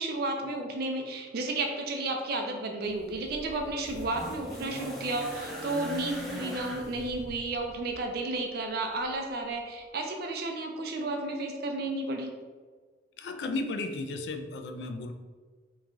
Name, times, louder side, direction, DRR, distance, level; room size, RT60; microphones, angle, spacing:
voice 1, 0.0-12.3, right 2 dB, 60° right, 3 dB, 0.5 m, -32 dB
sound 1, 2.8-8.1 9.1-9.2, equal, ahead, 0.5 m, -41 dB
voice 2, 13.2-15.1, left 2 dB, 65° left, 6 dB, 0.3 m, -34 dB
3.1 x 2.3 x 3.7 m, 1.5 s
head